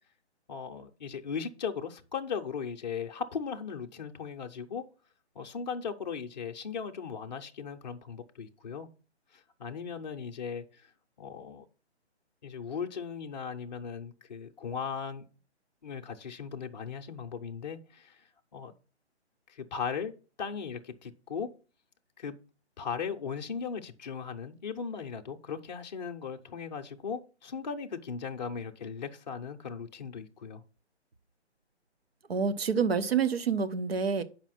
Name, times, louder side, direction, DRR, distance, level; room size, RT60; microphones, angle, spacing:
voice 1, 0.5-4.8 5.4-8.9 9.6-10.9 11.2-11.7 12.4-15.3 15.8-18.2 18.5-18.7 19.5-20.1 20.4-21.5 22.2-22.4 22.8-30.6, left 6 dB, 40° left, 0.6 m, -37 dB
voice 2, 32.3-34.2, right 6 dB, 60° right, 0.9 m, -27 dB
7.2 x 5.0 x 5.9 m
hypercardioid pair, 160°, 35 cm